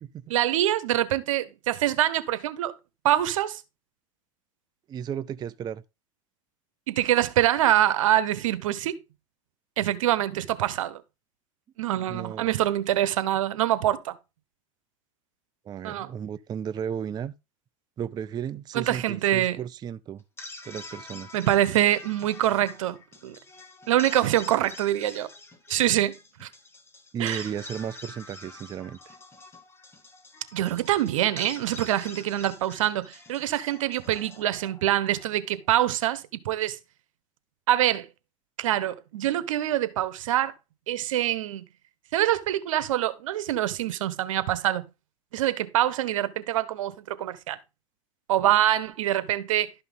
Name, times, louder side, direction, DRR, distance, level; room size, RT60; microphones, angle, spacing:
voice 1, 0.3-2.8 3.0-3.6 6.9-9.0 9.8-11.0 11.8-14.2 15.8-16.1 18.7-19.6 21.3-23.0 23.2-23.4 23.9-25.3 25.7-26.5 27.2-27.4 30.5-36.8 37.7-38.1 38.6-40.5 40.9-41.6 42.1-44.9 45.3-47.6 48.3-49.7, right 13 dB, 85° right, 1.1 m, -25 dB
voice 2, 4.9-5.8 12.1-12.5 15.6-17.3 18.0-20.2 20.6-21.3 27.1-29.1, right 8 dB, 25° right, 0.4 m, -34 dB
sound 1, 20.2-35.4, left 2 dB, 15° left, 2.2 m, -46 dB
12.0 x 5.7 x 3.9 m
supercardioid pair, 115°, 16 cm